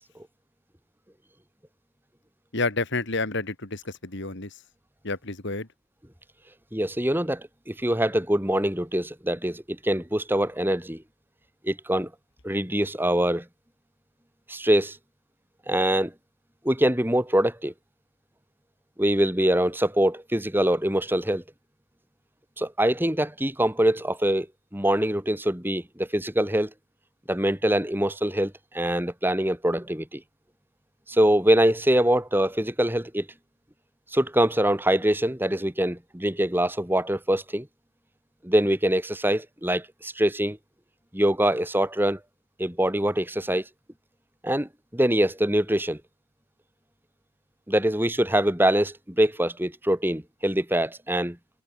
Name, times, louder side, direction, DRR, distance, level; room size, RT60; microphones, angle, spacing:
voice 1, 2.5-4.6 5.0-5.7, left 3 dB, 55° left, 2.6 m, -29 dB
voice 2, 6.7-11.0 11.6-12.1 12.4-13.4 14.5-15.0 15.7-16.1 16.6-17.7 19.0-21.4 22.6-24.5 24.7-26.7 27.3-30.2 31.1-33.3 34.1-37.7 38.4-40.6 41.1-42.2 42.6-43.6 44.4-46.0 47.7-51.4, right 1 dB, 10° right, 2.5 m, -24 dB
head